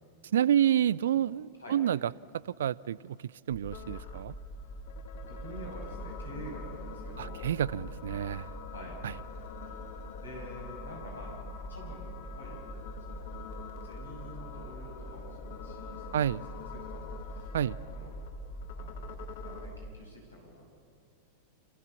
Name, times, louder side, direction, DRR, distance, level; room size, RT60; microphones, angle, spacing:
voice 1, 0.3-2.0 2.6-3.2 3.5-4.3 7.2-8.5 9.0-9.1 16.1-16.4 17.5-17.7, right 10 dB, 60° right, 0.4 m, -28 dB
sound 1, 3.5-19.9, right 1 dB, 25° left, 2.2 m, -44 dB
sound 2, 3.7-19.7, left 8 dB, 55° left, 1.8 m, -47 dB
voice 2, 5.3-7.5 8.6-9.0 10.2-11.3 11.7-12.6 13.1-13.3 13.8-16.4 16.7-18.2 18.7-19.1 19.4-20.6, equal, 75° left, 6.9 m, -47 dB
28.0 x 16.5 x 7.1 m
figure-of-eight pair, 90°, 0 cm